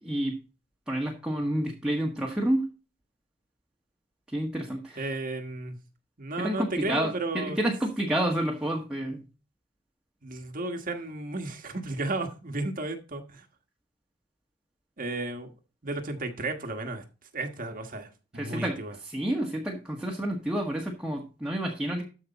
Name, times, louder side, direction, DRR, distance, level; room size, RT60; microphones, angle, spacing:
voice 1, 0.0-0.4 0.9-2.7 4.3-5.0 6.4-9.2 18.3-22.0, right 1 dB, 5° right, 1.6 m, -29 dB
voice 2, 5.0-5.8 6.2-7.6 10.2-13.4 15.0-15.5 15.8-17.0 17.3-18.9, right 2 dB, 50° right, 1.4 m, -33 dB
13.5 x 5.3 x 4.1 m
head